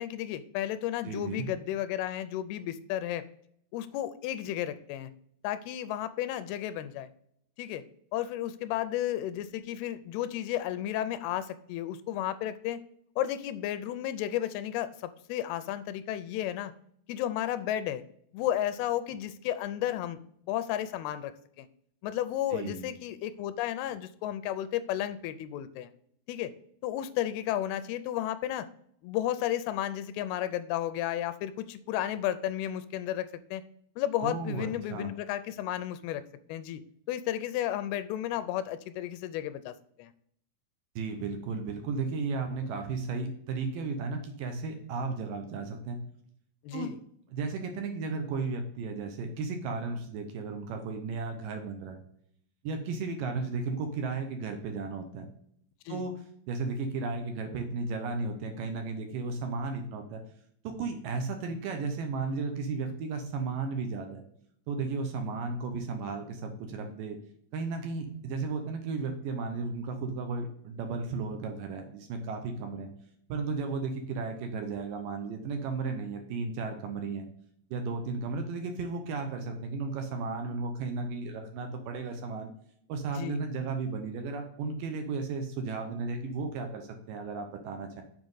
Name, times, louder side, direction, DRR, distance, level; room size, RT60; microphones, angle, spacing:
voice 1, 0.0-3.2 3.7-5.1 5.4-7.1 7.6-7.8 8.1-12.8 13.2-16.7 17.1-18.0 18.3-20.2 20.5-21.3 21.6-21.7 22.0-25.9 26.3-26.5 26.8-28.7 29.0-33.6 34.0-36.2 36.5-36.8 37.1-40.1 46.6-47.0 55.9-56.1 83.1-83.4, left 12 dB, 90° left, 12 dB, 2.6 m, -33 dB
voice 2, 1.0-1.5 22.5-22.9 34.2-35.1 41.0-46.0 46.7-46.9 47.3-52.0 52.6-55.3 55.9-56.1 56.5-60.2 60.6-64.2 64.7-67.2 67.5-72.9 73.3-77.3 77.7-82.5 82.9-88.0, right 4 dB, 70° right, 5 dB, 2.3 m, -34 dB
7.4 x 5.0 x 3.9 m, 0.67 s
omnidirectional pair, 4.4 m